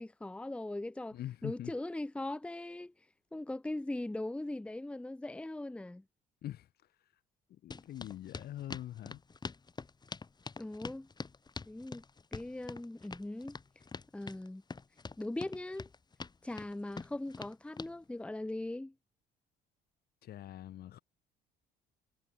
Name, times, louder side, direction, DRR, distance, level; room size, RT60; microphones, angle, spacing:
voice 1, 0.0-2.9 3.3-6.0 10.6-11.1 11.7-12.0 12.3-13.6 14.1-14.6 15.2-15.9 16.4-18.9, left 1 dB, 5° left, 0.9 m, -40 dB
voice 2, 1.1-1.7 6.4-6.7 7.5-9.2 20.2-21.0, left 12 dB, 60° left, 1.6 m, -43 dB
sound 1, 7.7-17.9, left 4 dB, 25° left, 2.1 m, -45 dB
cardioid pair, 100°, 18 cm